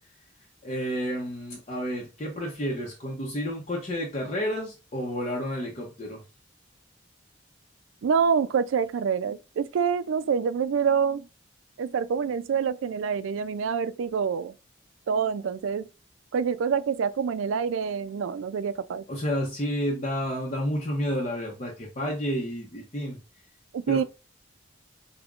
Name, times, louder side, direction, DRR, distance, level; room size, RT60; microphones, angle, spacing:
voice 1, 0.6-6.2 19.1-23.2 23.9-24.0, equal, 35° left, 0.7 m, -30 dB
voice 2, 8.0-11.3 11.8-14.5 15.1-15.9 16.3-19.0 23.7-24.0, right 6 dB, 85° right, 0.3 m, -26 dB
5.1 x 2.2 x 2.4 m
head